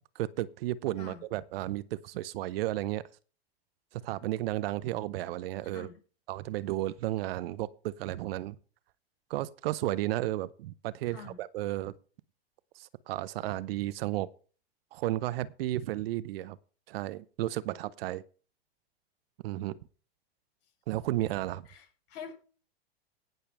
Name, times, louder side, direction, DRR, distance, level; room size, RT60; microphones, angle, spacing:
voice 1, 0.1-3.0 3.9-5.9 6.3-8.6 9.3-11.9 12.8-14.3 14.9-16.6 16.9-18.2 19.4-19.8 20.9-21.7, right 15 dB, 65° right, 0.8 m, -33 dB
voice 2, 5.6-6.0 11.1-11.4 21.7-22.3, left 7 dB, 60° left, 6.9 m, -46 dB
18.5 x 6.7 x 3.4 m
hypercardioid pair, 110°, 32 cm